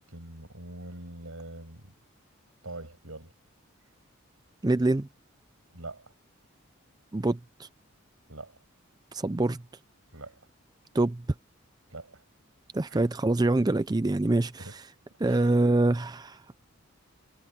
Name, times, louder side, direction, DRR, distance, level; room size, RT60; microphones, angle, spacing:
voice 1, 0.0-1.9 2.6-3.3 5.7-6.1 8.3-8.6 10.1-10.4 11.9-12.2 12.9-13.1 14.6-14.8 15.2-15.6, right 2 dB, 85° right, 7.1 m, -43 dB
voice 2, 4.6-5.1 7.1-7.7 9.1-9.6 10.9-11.2 12.7-14.7 15.2-16.6, right 2 dB, 20° right, 0.4 m, -25 dB
head